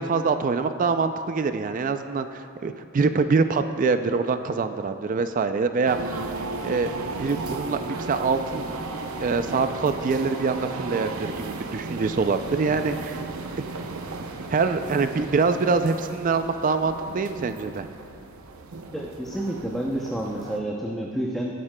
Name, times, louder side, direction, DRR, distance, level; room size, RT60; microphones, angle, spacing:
voice 1, 0.0-6.0 6.6-6.9 7.2-8.8 9.2-13.2 14.5-17.9, right 4 dB, 40° right, 9 dB, 0.4 m, -24 dB
sound 1, 5.9-20.6, right 3 dB, 75° right, 0.7 m, -35 dB
voice 2, 18.9-21.5, right 1 dB, ahead, -3 dB, 0.6 m, -29 dB
19.0 x 9.5 x 2.2 m, 2.5 s
head